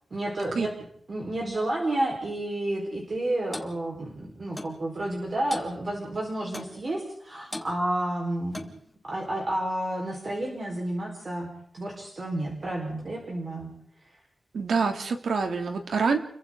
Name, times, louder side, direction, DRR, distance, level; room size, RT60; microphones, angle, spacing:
voice 1, 0.1-0.7 1.1-8.7 9.0-13.7, right 1 dB, 40° right, -1 dB, 4.5 m, -31 dB
Clock, 3.5-3.7 4.6-4.8 5.5-5.7 6.5-6.8 7.5-7.7 8.5-8.8, left 1 dB, 10° left, 1.9 m, -37 dB
voice 2, 14.5-16.2, right 5 dB, 90° right, 5 dB, 2.6 m, -26 dB
29.5 x 23.0 x 3.8 m, 0.63 s
wide cardioid pair, 155°, 0 cm